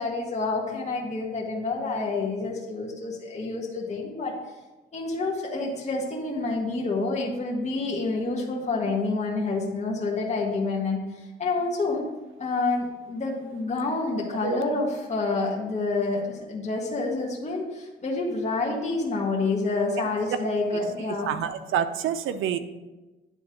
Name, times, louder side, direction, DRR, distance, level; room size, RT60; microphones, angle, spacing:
voice 1, 0.0-4.3 4.9-12.1 12.4-21.3, left 3 dB, 35° left, -3 dB, 1.7 m, -28 dB
voice 2, 21.3-22.6, right 9 dB, 85° right, 11 dB, 0.7 m, -27 dB
10.0 x 3.8 x 6.4 m, 1.1 s
cardioid pair, 90°, 20 cm